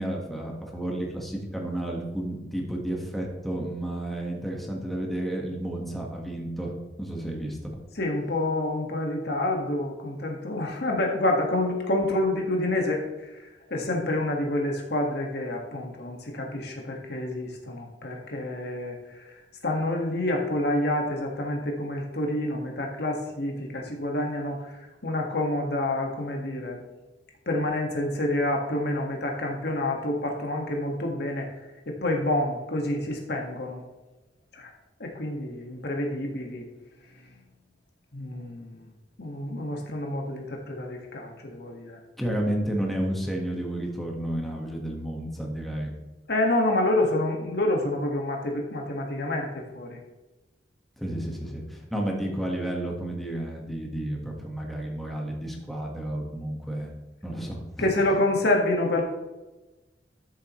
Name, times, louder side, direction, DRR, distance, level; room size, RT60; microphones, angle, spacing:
voice 1, 0.0-6.7 7.0-7.6 42.2-45.9 51.0-56.9 57.2-57.9, right 1 dB, ahead, -1 dB, 1.6 m, -31 dB
voice 2, 8.0-13.0 13.3-19.3 19.6-24.8 25.0-26.8 27.4-31.5 31.8-33.8 34.5-34.7 35.0-36.6 38.1-38.8 39.2-42.0 46.3-50.0 57.8-59.0, left 1 dB, 65° left, 1 dB, 1.8 m, -28 dB
13.5 x 7.0 x 3.2 m, 1.1 s
head